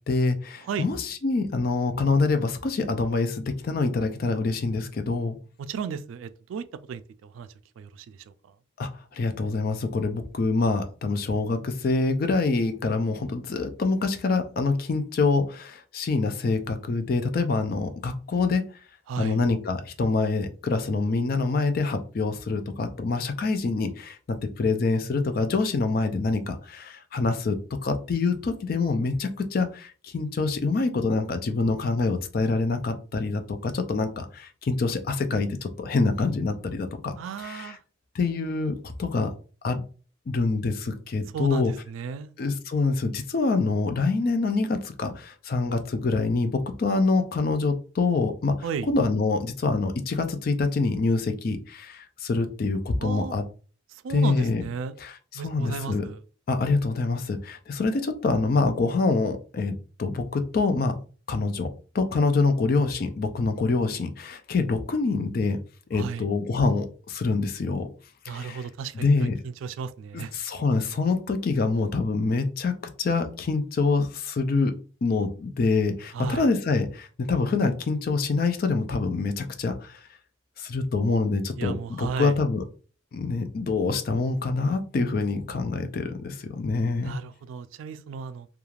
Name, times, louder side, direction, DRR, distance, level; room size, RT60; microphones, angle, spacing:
voice 1, 0.1-5.4 8.8-18.6 19.2-37.2 37.4-37.7 38.1-39.3 39.6-39.8 40.3-41.7 42.4-48.6 48.9-53.4 54.1-54.6 55.0-56.0 56.5-61.0 61.3-61.7 61.9-65.6 65.9-67.9 68.3-68.6 68.9-69.4 70.1-74.7 75.0-80.0 80.6-82.6 83.1-87.1, left 3 dB, 50° left, 0.4 m, -26 dB
voice 2, 5.6-7.5 7.8-8.3 19.1-19.4 37.2-37.8 41.3-42.3 48.6-48.9 53.0-53.3 53.9-54.9 55.3-56.2 65.9-66.3 68.3-70.4 76.1-76.5 81.6-82.4 87.0-88.5, right 6 dB, 85° right, 0.3 m, -34 dB
3.1 x 2.3 x 2.3 m
head